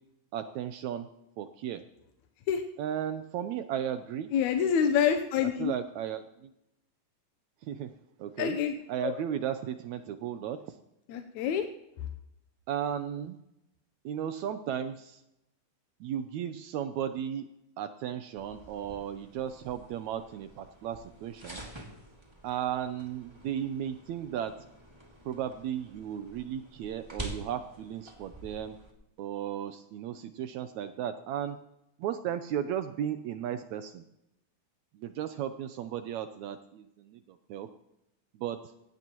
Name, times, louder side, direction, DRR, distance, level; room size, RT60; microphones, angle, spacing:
voice 1, 0.3-1.1 1.4-1.8 2.8-4.3 5.6-6.5 7.6-7.9 8.2-8.6 8.9-10.8 12.7-13.4 14.0-15.2 16.0-17.5 17.8-21.6 22.4-24.7 25.2-28.8 29.2-31.6 32.0-34.0 34.9-37.7 38.3-38.6, right 9 dB, 80° right, 9 dB, 1.6 m, -35 dB
voice 2, 4.3-5.7 8.4-8.7 9.0-9.1 11.1-11.7, left 8 dB, 70° left, 7 dB, 1.9 m, -26 dB
sound 1, 18.4-28.9, right 1 dB, 10° right, 1.4 m, -47 dB
17.0 x 16.5 x 3.0 m, 0.87 s
omnidirectional pair, 4.0 m